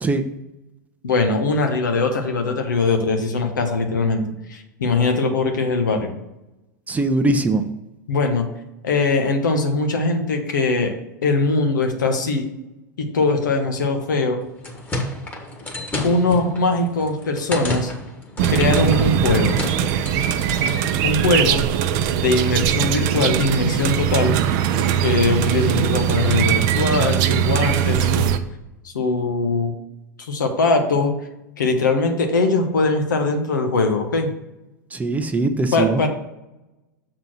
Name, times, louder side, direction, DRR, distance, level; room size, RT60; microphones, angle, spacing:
voice 1, 1.0-4.2 4.5-6.1 8.1-8.4 8.8-10.9 11.2-12.5 13.0-14.4 16.0-17.9 18.5-19.6 21.0-21.6 22.1-24.4 25.0-28.3 28.8-29.7 30.2-31.1 31.6-34.3 35.7-36.1, left 3 dB, 80° left, 4 dB, 1.3 m, -21 dB
voice 2, 6.9-7.6 34.9-36.0, right 2 dB, 15° right, 8 dB, 0.7 m, -21 dB
sound 1, 14.4-20.8, left 2 dB, 20° left, 1.6 m, -31 dB
sound 2, 18.4-28.4, right 9 dB, 50° right, 0.6 m, -20 dB
6.7 x 4.1 x 6.2 m, 0.96 s
hypercardioid pair, 95°, 10 cm